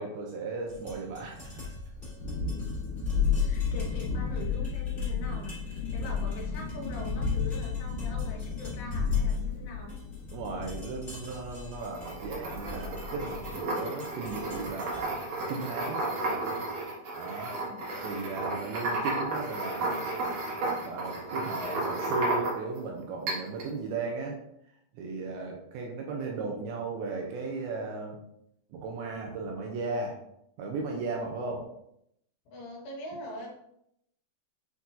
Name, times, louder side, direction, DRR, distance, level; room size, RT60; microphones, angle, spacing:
voice 1, 0.0-1.6 4.3-4.4 10.3-16.0 17.2-17.6 18.0-20.0 20.9-24.4 24.9-28.2 28.7-30.2 30.6-31.7, right 3 dB, 75° right, 0 dB, 2.5 m, -36 dB
sound 1, 0.6-16.7, left 1 dB, 20° left, 1.5 m, -49 dB
Thunderstorm, 1.9-13.5, left 5 dB, 70° left, 2.2 m, -32 dB
voice 2, 3.4-10.0 17.6-17.9 32.5-33.6, left 2 dB, 85° left, -2 dB, 3.6 m, -43 dB
sound 2, 11.8-22.8 23.3-23.7, right 2 dB, 60° right, 1.7 m, -33 dB
8.1 x 4.5 x 2.7 m, 0.76 s
omnidirectional pair, 4.7 m